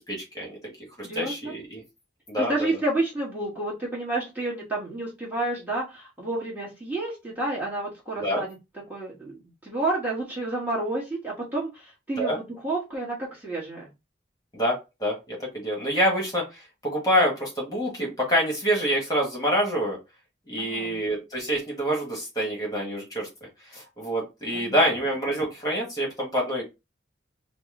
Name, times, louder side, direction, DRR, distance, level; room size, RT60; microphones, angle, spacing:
voice 1, 0.1-0.6 1.1-1.8 2.3-2.5 8.1-8.4 12.2-12.4 14.5-16.4 16.8-20.0 20.5-23.3 23.7-26.6, equal, 20° left, -2 dB, 1.3 m, -26 dB
voice 2, 1.0-1.5 2.4-8.6 8.9-13.9 20.6-21.0 24.5-24.9, right 2 dB, 10° right, -6 dB, 1.3 m, -30 dB
4.1 x 2.0 x 3.6 m, 0.24 s
head